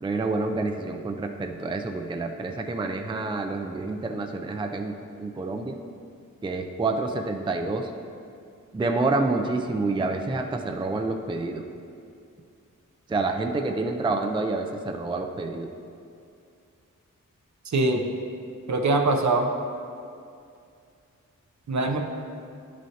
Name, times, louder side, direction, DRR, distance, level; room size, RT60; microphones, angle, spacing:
voice 1, 0.0-5.8 6.4-7.9 8.7-11.7 13.1-15.7, right 3 dB, 15° right, 4 dB, 0.4 m, -28 dB
voice 2, 17.7-18.0 18.7-19.5 21.7-22.0, right 2 dB, 60° right, 3 dB, 0.7 m, -22 dB
10.5 x 6.2 x 2.8 m, 2.5 s
wide cardioid pair, 95°, 32 cm